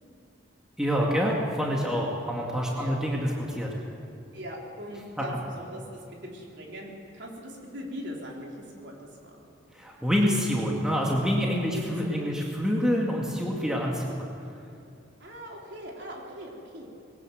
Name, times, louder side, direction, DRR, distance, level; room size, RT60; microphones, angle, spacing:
voice 1, 0.8-3.7 9.7-14.2, equal, 5° right, -2 dB, 2.1 m, -26 dB
voice 2, 4.3-9.4 11.7-12.3 15.2-16.9, equal, 60° right, -1 dB, 4.0 m, -41 dB
21.0 x 18.0 x 8.0 m, 2.7 s
head